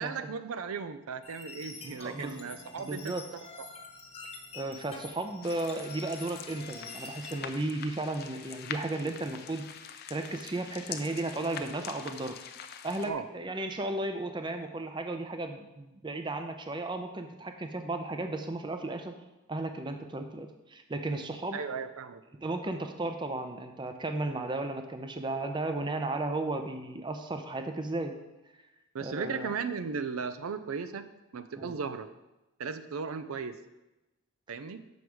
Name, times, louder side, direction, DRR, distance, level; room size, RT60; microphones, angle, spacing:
voice 1, 0.0-3.7 13.0-13.3 21.5-22.2 28.9-31.1 31.3-32.1 32.6-33.6 34.5-34.8, right 5 dB, 85° right, 11 dB, 0.5 m, -36 dB
sound 1, 1.2-7.4, left 3 dB, 30° left, 1.0 m, -47 dB
voice 2, 2.0-2.5 2.8-3.2 4.5-9.6 10.1-12.4 12.8-19.1 19.5-21.6 22.4-28.1 29.0-29.5 31.6-31.8, right 2 dB, 20° right, 6 dB, 0.5 m, -34 dB
sound 2, 5.4-13.1, left 8 dB, 45° left, 0.5 m, -44 dB
7.2 x 6.2 x 4.7 m, 1.0 s
head